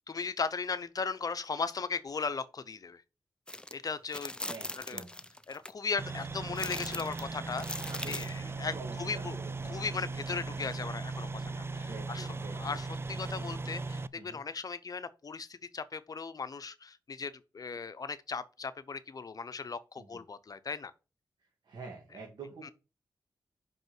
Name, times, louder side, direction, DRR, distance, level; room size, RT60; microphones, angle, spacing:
voice 1, 0.1-3.0 3.7-4.4 4.8-5.0 5.5-7.7 8.0-9.4 9.7-12.3 12.6-20.9 22.6-22.7, left 5 dB, 55° left, 0.7 m, -37 dB
sound 1, 3.5-3.7 4.1-5.7 6.6-8.4, left 1 dB, 10° left, 0.6 m, -40 dB
voice 2, 4.4-5.3 7.9-9.7 11.0-11.1 11.5-12.8 14.1-14.4 20.0-20.2 21.6-22.7, right 3 dB, 75° right, 2.2 m, -47 dB
sound 2, 6.0-14.1, right 3 dB, 30° right, 0.4 m, -38 dB
5.6 x 5.3 x 6.0 m
cardioid pair, 60°, 8 cm